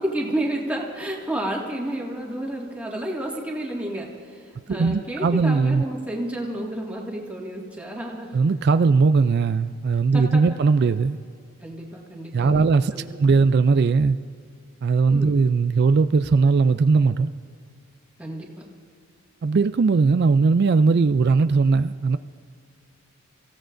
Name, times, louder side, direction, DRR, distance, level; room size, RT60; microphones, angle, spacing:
voice 1, 0.0-8.4 10.1-10.4 11.6-13.4 15.1-15.4 18.2-18.7, right 1 dB, 5° right, 1.9 m, -31 dB
voice 2, 4.7-5.8 8.3-11.2 12.3-12.9 13.2-14.2 14.8-17.3 19.4-22.2, right 4 dB, 50° right, 0.3 m, -19 dB
29.0 x 16.0 x 2.6 m
head